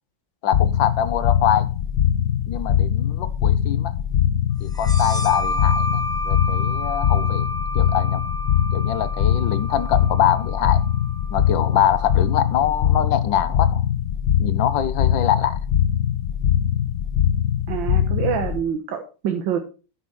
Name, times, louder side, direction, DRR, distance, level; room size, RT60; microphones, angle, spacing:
voice 1, 0.4-1.7 2.5-3.9 4.6-7.5 7.8-8.3 8.7-10.9 11.3-13.8 14.4-15.6, left 9 dB, 90° left, 1.6 m, -24 dB
sound 1, 0.5-18.6, left 10 dB, 60° left, 1.1 m, -22 dB
sound 2, 4.7-12.0, equal, 5° left, 0.8 m, -30 dB
voice 2, 17.7-19.6, right 8 dB, 85° right, 1.8 m, -26 dB
13.0 x 6.1 x 4.3 m
omnidirectional pair, 2.0 m